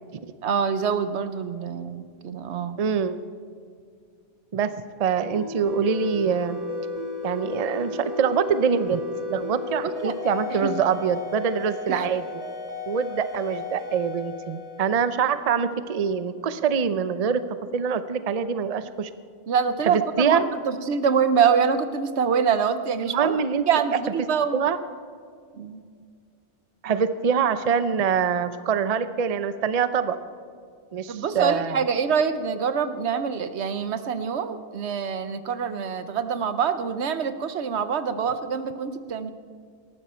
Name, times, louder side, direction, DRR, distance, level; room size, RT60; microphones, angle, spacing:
voice 1, 0.4-2.8 10.0-10.1 10.6-10.7 11.9-12.1 19.5-23.3 23.7-24.7 25.5-25.8 31.1-39.3, right 6 dB, 80° right, 11 dB, 1.1 m, -25 dB
voice 2, 2.8-3.2 4.5-4.7 5.0-6.6 7.2-9.0 9.3-12.4 12.9-17.4 17.7-19.1 19.8-20.5 23.1-23.6 24.5-24.8 26.8-30.2 30.9-31.8, right 6 dB, 40° right, 12 dB, 0.6 m, -24 dB
sound 1, 5.3-15.7, left 3 dB, 35° left, 2.0 m, -34 dB
18.5 x 14.0 x 4.4 m, 2.2 s
omnidirectional pair, 1.1 m